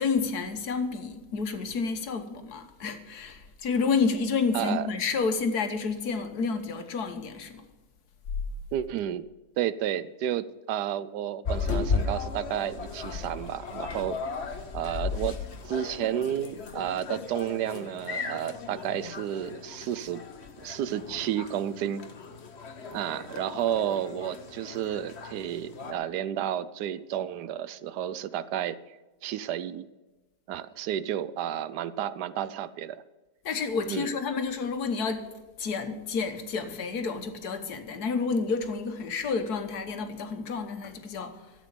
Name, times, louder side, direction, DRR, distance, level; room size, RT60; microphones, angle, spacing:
voice 1, 0.0-7.6 33.4-35.3 35.6-41.4, left 5 dB, 70° left, 8 dB, 1.7 m, -30 dB
voice 2, 4.5-4.9 8.7-9.3 9.6-14.2 14.7-20.2 20.6-22.1 22.9-28.8 29.2-29.9 30.5-33.0 33.9-34.1, right 10 dB, 85° right, 15 dB, 1.2 m, -31 dB
sound 1, 11.4-25.9, left 5 dB, 45° left, 1.2 m, -36 dB
13.0 x 8.3 x 6.8 m, 1.2 s
omnidirectional pair, 1.7 m